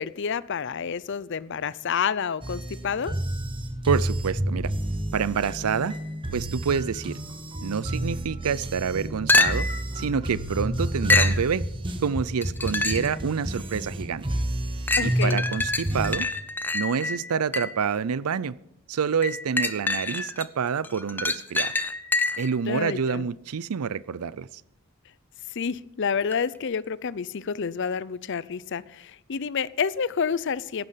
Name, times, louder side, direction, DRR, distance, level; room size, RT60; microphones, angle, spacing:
voice 1, 0.0-3.1 15.0-15.4 22.6-23.3 25.5-30.9, left 6 dB, 55° left, 0.5 m, -29 dB
sound 1, 2.4-16.2, right 1 dB, 20° right, 1.2 m, -30 dB
voice 2, 3.9-4.7 5.1-6.0 6.3-7.2 7.6-9.7 10.0-11.6 12.0-14.2 15.0-16.3 16.7-18.6 18.9-21.7 22.4-24.5, right 6 dB, 80° right, 0.5 m, -27 dB
sound 2, 9.3-9.9 11.1-11.4 12.4-13.2 13.7-13.8 14.9-17.9 19.2-20.5 20.8-22.5 26.3-26.4, left 3 dB, 10° left, 0.6 m, -26 dB
16.0 x 12.0 x 5.7 m
head